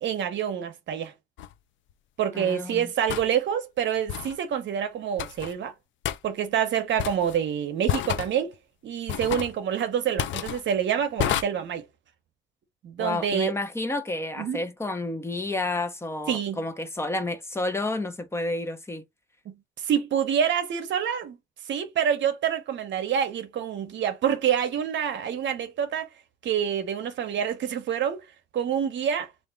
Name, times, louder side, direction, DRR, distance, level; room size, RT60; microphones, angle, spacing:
voice 1, 0.0-1.1 2.2-5.7 6.2-8.6 8.8-11.8 12.8-13.5 14.4-14.6 16.3-16.6 19.5-19.6 19.8-21.4 21.7-26.1 26.4-28.2 28.5-29.3, right 8 dB, 65° right, 0.8 m, -27 dB
sound 1, 1.4-1.5 3.1-3.3 4.1-4.3 5.2-5.5 6.0-6.2 7.0-7.4 7.9-8.3 9.1-9.5 10.2-10.6 11.2-11.4, left 11 dB, 70° left, 0.5 m, -29 dB
voice 2, 2.3-2.9 13.0-19.0, left 2 dB, 15° left, 0.8 m, -30 dB
3.5 x 2.5 x 3.4 m
cardioid pair, 90°, 20 cm